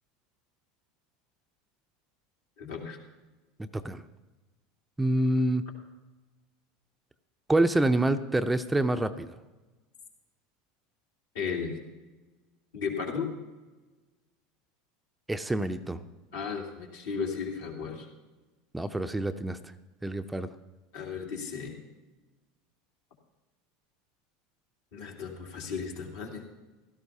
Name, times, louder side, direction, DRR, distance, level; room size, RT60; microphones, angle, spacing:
voice 1, 2.6-3.0 11.3-11.8 12.7-13.3 16.3-18.1 20.9-21.7 24.9-26.4, left 6 dB, 70° left, -2 dB, 2.6 m, -35 dB
voice 2, 3.6-4.0 5.0-5.6 7.5-9.3 15.3-16.0 18.7-19.6 20.0-20.5, right 1 dB, 10° right, 9 dB, 0.6 m, -27 dB
16.5 x 13.0 x 2.8 m, 1.2 s
figure-of-eight pair, 80°, 0 cm